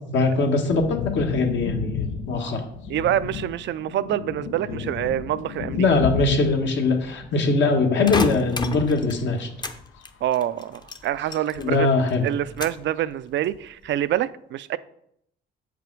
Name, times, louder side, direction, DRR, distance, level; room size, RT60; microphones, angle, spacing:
voice 1, 0.1-2.7 5.8-9.5 11.6-12.3, left 3 dB, 70° left, 1.4 m, -22 dB
sound 1, 0.6-7.5 7.9-8.1 9.7-10.7 11.9-12.0, left 7 dB, 85° left, 0.7 m, -33 dB
voice 2, 2.9-5.8 10.2-11.9 12.2-14.8, right 12 dB, 65° right, 0.4 m, -26 dB
sound 2, 8.1-9.8 10.0-11.8 12.1-12.9 13.4-13.9, left 3 dB, 20° left, 0.7 m, -31 dB
7.6 x 5.0 x 4.6 m
cardioid pair, 90°, 20 cm